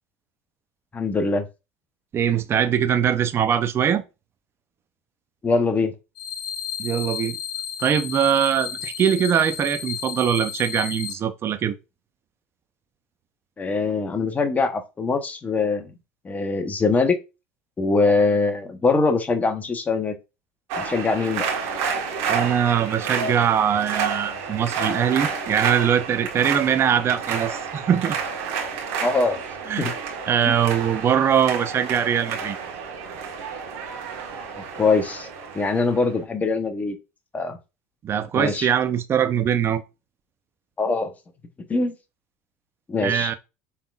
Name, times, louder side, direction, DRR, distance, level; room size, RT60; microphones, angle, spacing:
voice 1, 0.9-1.4 5.4-5.9 13.6-15.9 16.2-17.2 17.8-20.1 20.8-21.5 29.0-29.4 29.8-29.9 30.4-30.5 34.8-35.3 35.5-37.0 37.3-37.6 38.3-38.7 40.8-41.1 41.7-41.9 42.9-43.3, left 3 dB, 25° left, 1.0 m, -22 dB
voice 2, 2.1-4.0 6.8-7.4 7.8-11.7 22.3-28.2 29.7-29.9 30.3-32.6 38.0-39.8 43.0-43.3, right 8 dB, 40° right, 0.7 m, -22 dB
sound 1, 6.2-11.1, left 8 dB, 60° left, 2.2 m, -32 dB
sound 2, 20.7-36.2, right 6 dB, 70° right, 1.6 m, -30 dB
5.7 x 3.6 x 2.4 m
hypercardioid pair, 85°, 7 cm